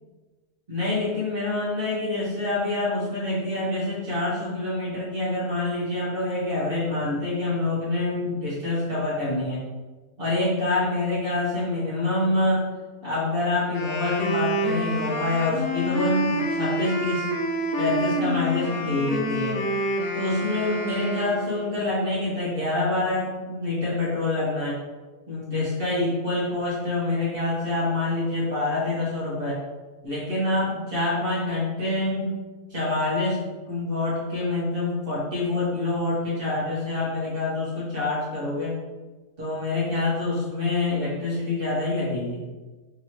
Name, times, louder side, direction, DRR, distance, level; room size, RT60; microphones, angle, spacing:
voice 1, 0.7-9.7 10.2-12.7 13.0-17.2 17.8-19.6 20.1-24.8 25.3-29.6 30.0-32.3 32.7-33.4 33.7-38.7 39.4-42.4, left 2 dB, 40° right, -7 dB, 1.4 m, -26 dB
Wind instrument woodwind instrument, 13.6-21.7, right 1 dB, 75° left, 1.0 m, -28 dB
3.8 x 2.9 x 3.0 m, 1.3 s
omnidirectional pair, 1.6 m